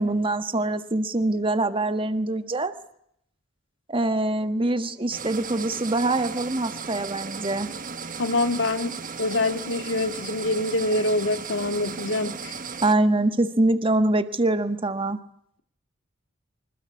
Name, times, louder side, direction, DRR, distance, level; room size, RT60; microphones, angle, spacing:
voice 1, 0.0-2.7 3.9-7.7 12.8-15.2, right 2 dB, 30° right, 1.5 m, -24 dB
sound 1, 5.1-12.9, right 5 dB, 45° right, 1.3 m, -36 dB
voice 2, 8.2-8.9 9.2-12.6, left 2 dB, 90° left, 2.2 m, -25 dB
25.5 x 22.0 x 8.3 m
head